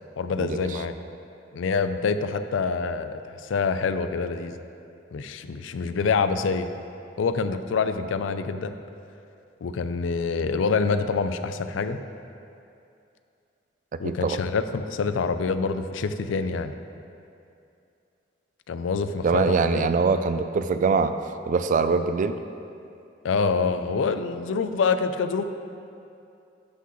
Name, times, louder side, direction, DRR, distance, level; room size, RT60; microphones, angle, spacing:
voice 1, 0.2-0.9 1.5-4.6 5.1-6.7 7.2-8.7 9.6-12.0 14.0-16.7 18.7-19.9 23.2-25.4, left 5 dB, 90° left, 10 dB, 0.4 m, -26 dB
voice 2, 14.0-14.4 19.2-21.1 21.5-22.4, right 4 dB, 45° right, 10 dB, 0.3 m, -23 dB
11.5 x 5.9 x 3.1 m, 2.6 s
head